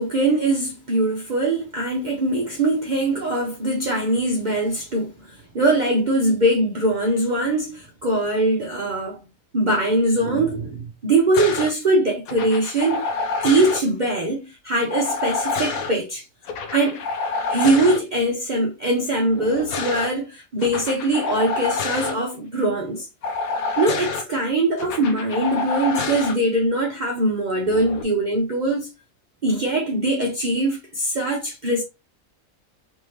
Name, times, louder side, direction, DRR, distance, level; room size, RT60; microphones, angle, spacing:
voice 1, 0.0-9.2 9.5-13.0 13.4-16.2 16.7-17.0 17.5-23.1 23.8-28.9 29.4-31.8, right 2 dB, 40° right, 0.8 m, -22 dB
sound 1, 11.3-11.7 12.3-13.8 14.9-15.9 16.4-18.0 19.3-20.1 20.6-22.1 23.2-24.2 24.8-26.3 27.6-28.0, left 4 dB, 85° left, 1.2 m, -27 dB
3.5 x 3.3 x 2.8 m
omnidirectional pair, 1.5 m